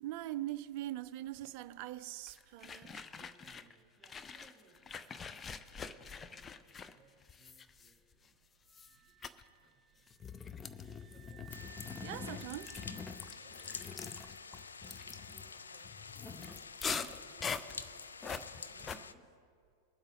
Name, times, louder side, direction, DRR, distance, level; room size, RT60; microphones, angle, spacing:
voice 1, 0.0-3.0 12.0-12.7, right 14 dB, 45° right, 0.4 m, -42 dB
sound 1, 2.3-3.8 4.0-8.3 8.7-9.0 9.2-9.4 10.1-19.0, left 6 dB, 20° left, 0.5 m, -44 dB
voice 2, 2.9-4.8 5.7-9.2 9.6-10.0 10.3-11.5 13.3-13.9 14.8-18.0 18.5-19.4, right 4 dB, 10° right, 3.0 m, -65 dB
Wind instrument woodwind instrument, 8.7-16.1, right 12 dB, 30° right, 2.3 m, -62 dB
sound 2, 11.5-19.1, left 5 dB, 75° left, 0.4 m, -49 dB
20.5 x 7.9 x 3.9 m
figure-of-eight pair, 90°, 0 cm